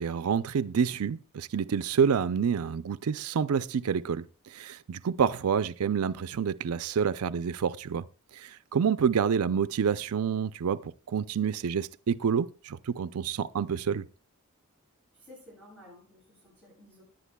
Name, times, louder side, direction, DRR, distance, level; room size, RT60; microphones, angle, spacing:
voice 1, 0.0-8.1 8.3-14.0, right 7 dB, 80° right, 0.4 m, -28 dB
voice 2, 15.1-17.0, left 1 dB, 5° left, 7.4 m, -53 dB
19.5 x 10.5 x 2.2 m
head